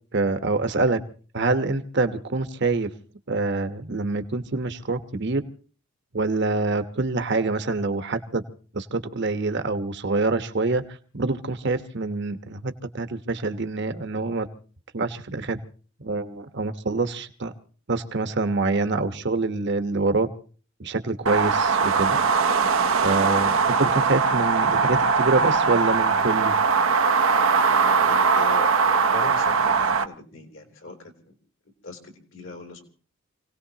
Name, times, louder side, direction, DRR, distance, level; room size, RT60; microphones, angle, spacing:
voice 1, 0.1-1.0 1.3-2.9 3.3-5.4 6.1-8.4 8.7-10.8 11.1-14.5 14.9-15.6 16.0-17.5 17.9-20.3 20.8-22.2 23.0-26.5, right 3 dB, 60° right, 9 dB, 1.2 m, -25 dB
sound 1, 21.3-30.0, right 5 dB, 75° right, 0.8 m, -21 dB
voice 2, 27.4-31.4 31.8-32.8, left 2 dB, 70° left, 2 dB, 3.1 m, -39 dB
28.0 x 18.0 x 2.9 m, 0.40 s
head